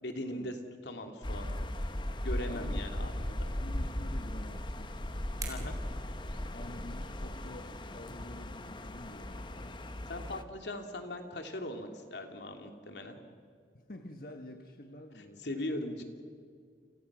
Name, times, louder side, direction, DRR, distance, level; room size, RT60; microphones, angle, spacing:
voice 1, 0.0-0.5 0.8-1.7 2.2-3.4 5.5-5.8 10.1-13.2 15.1-16.0, left 1 dB, 80° left, 4 dB, 2.8 m, -39 dB
sound 1, 1.2-10.4, left 1 dB, 25° left, 1.0 m, -37 dB
voice 2, 2.3-3.1 3.4-5.0 6.5-9.8 13.7-15.5, left 1 dB, 55° left, 4 dB, 1.4 m, -48 dB
sound 2, 4.3-7.0, right 5 dB, 20° right, 4.1 m, -49 dB
30.0 x 27.5 x 6.2 m, 2.1 s
head